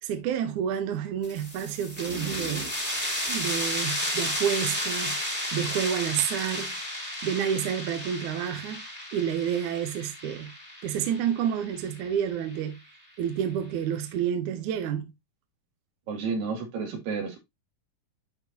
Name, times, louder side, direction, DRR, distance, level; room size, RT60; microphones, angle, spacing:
voice 1, 0.0-2.6 3.3-5.2 5.5-6.8 7.2-8.8 9.1-10.5 10.8-12.8 13.2-15.1, right 9 dB, 70° right, 2.3 m, -29 dB
sound 1, 1.2-12.6, left 1 dB, 5° right, 2.7 m, -33 dB
sound 2, 2.1-3.3, right 2 dB, 30° right, 2.6 m, -41 dB
voice 2, 16.1-17.4, right 5 dB, 90° right, 4.1 m, -31 dB
10.5 x 4.4 x 2.7 m
omnidirectional pair, 3.9 m